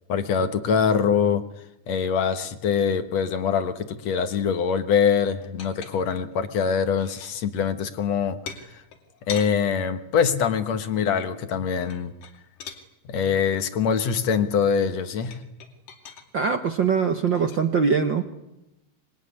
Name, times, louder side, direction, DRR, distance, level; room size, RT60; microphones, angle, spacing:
voice 1, 0.1-1.4 1.9-8.4 8.7-8.8 9.2-12.1 13.1-15.4, left 6 dB, 60° left, 10 dB, 2.2 m, -24 dB
sound 1, 5.4-6.3 6.8-7.4 8.5-9.5 11.8-12.8 15.3-16.3 17.3-17.6, left 7 dB, 75° left, 4.2 m, -40 dB
voice 2, 16.3-18.2, right 6 dB, 65° right, 8 dB, 1.1 m, -22 dB
25.5 x 22.0 x 9.9 m, 0.91 s
omnidirectional pair, 3.9 m